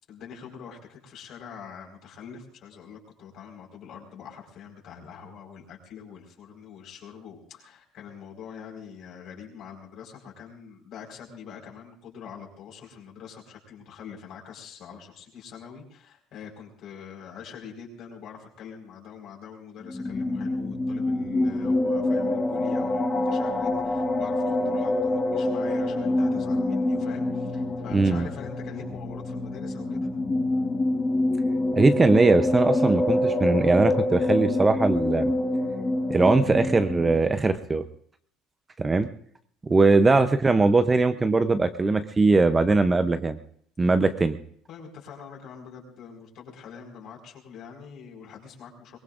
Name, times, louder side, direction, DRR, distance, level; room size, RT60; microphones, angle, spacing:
voice 1, 0.1-30.1 44.7-49.0, left 7 dB, 50° left, 0 dB, 4.7 m, -44 dB
sound 1, 19.8-37.2, left 2 dB, 20° left, 1.5 m, -26 dB
voice 2, 27.9-28.3 31.7-35.3 36.1-37.8 38.8-39.1 39.7-43.4 43.8-44.4, right 3 dB, 15° right, 10 dB, 0.6 m, -21 dB
23.0 x 19.5 x 2.5 m, 0.62 s
cardioid pair, 135°, 0 cm